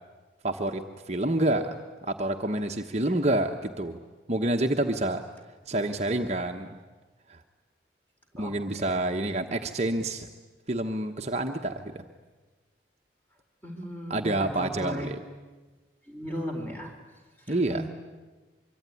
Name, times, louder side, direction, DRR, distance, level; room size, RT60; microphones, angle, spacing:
voice 1, 0.4-0.8 1.1-4.0 4.3-5.2 5.7-6.8 7.3-7.4 8.4-10.3 10.7-12.0 14.1-15.2 17.5-17.9, right 1 dB, 35° right, 4 dB, 1.1 m, -28 dB
voice 2, 13.6-15.1 16.1-16.9 17.7-17.9, equal, 10° left, 2 dB, 4.4 m, -36 dB
24.5 x 24.0 x 9.9 m, 1.3 s
head